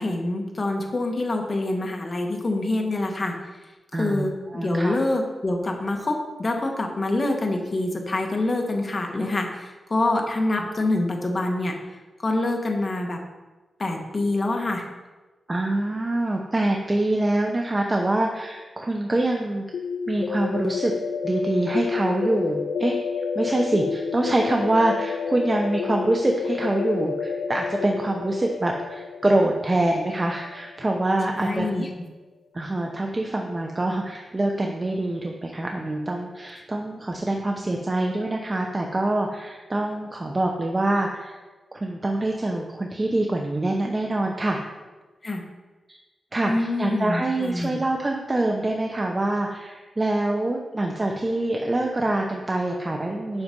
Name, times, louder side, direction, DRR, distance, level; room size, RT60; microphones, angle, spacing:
voice 1, 0.0-3.3 3.9-11.8 12.2-13.2 13.8-14.8 31.4-31.9 45.2-45.4 46.4-47.8, left 2 dB, 35° left, 2 dB, 1.5 m, -26 dB
voice 2, 3.9-5.0 10.6-10.7 15.5-19.6 20.1-20.9 21.2-23.0 23.3-31.7 32.5-41.3 41.7-44.6 46.3-53.4, right 2 dB, 25° right, 1 dB, 0.9 m, -25 dB
sound 1, 19.7-31.4, left 6 dB, 80° left, 0.4 m, -30 dB
8.1 x 6.0 x 5.3 m, 1.2 s
wide cardioid pair, 100°, 0 cm